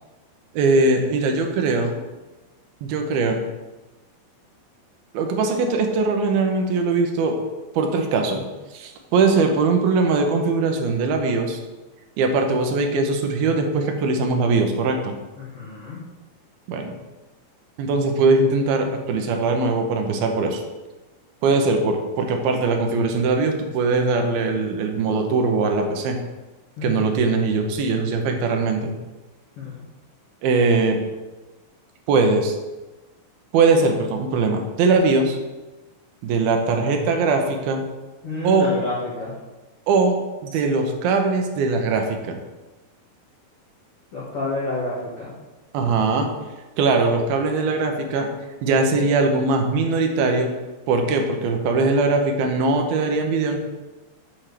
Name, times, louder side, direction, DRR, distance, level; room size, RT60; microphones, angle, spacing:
voice 1, 0.5-2.0 2.8-3.4 5.1-7.4 7.7-8.4 8.7-11.6 12.2-15.1 16.7-16.9 17.8-20.6 21.4-26.2 26.8-28.9 30.4-31.0 32.1-32.6 33.5-35.4 36.2-37.8 38.4-38.7 39.9-40.2 40.4-42.4 45.7-46.3 46.8-48.3 48.6-50.5 50.9-53.6, right 3 dB, 75° right, 4 dB, 2.8 m, -21 dB
voice 2, 15.4-16.0 26.8-27.0 29.6-29.8 38.2-39.3 44.1-45.3, left 2 dB, 50° left, -8 dB, 1.9 m, -29 dB
7.5 x 4.4 x 6.7 m, 1.2 s
omnidirectional pair, 4.4 m